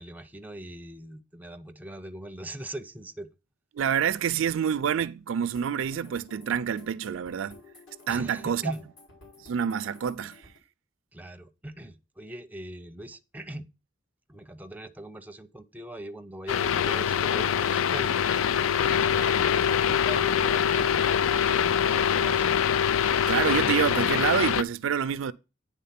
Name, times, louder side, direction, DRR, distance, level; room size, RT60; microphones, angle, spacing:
voice 1, 0.0-3.3 4.2-4.3 8.1-8.8 11.1-13.7 14.3-22.5, right 1 dB, 10° right, 0.5 m, -41 dB
voice 2, 3.7-7.6 8.1-8.6 9.4-10.4 23.3-25.3, right 8 dB, 70° right, 0.4 m, -27 dB
sound 1, 5.5-10.6, left 3 dB, 65° left, 3.2 m, -52 dB
sound 2, 16.5-24.6, left 8 dB, 90° left, 0.4 m, -24 dB
9.3 x 3.6 x 5.7 m
head